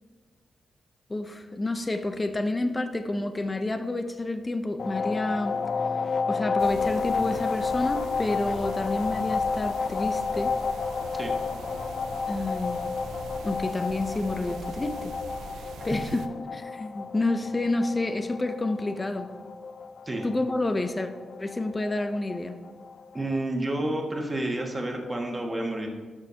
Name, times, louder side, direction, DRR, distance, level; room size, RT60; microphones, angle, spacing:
voice 1, 1.1-5.6 6.3-10.5 12.3-12.8 13.4-15.2 15.8-16.3 16.5-19.3 20.2-21.1 21.4-22.6, left 2 dB, 25° left, 8 dB, 0.7 m, -29 dB
sound 1, 4.8-23.4, left 5 dB, 55° left, 0.4 m, -31 dB
sound 2, 6.6-16.3, right 4 dB, 85° right, 0.5 m, -42 dB
voice 2, 23.1-25.9, right 1 dB, 30° right, 1 dB, 1.7 m, -30 dB
12.5 x 6.3 x 2.9 m, 1.5 s
supercardioid pair, 50°, 0 cm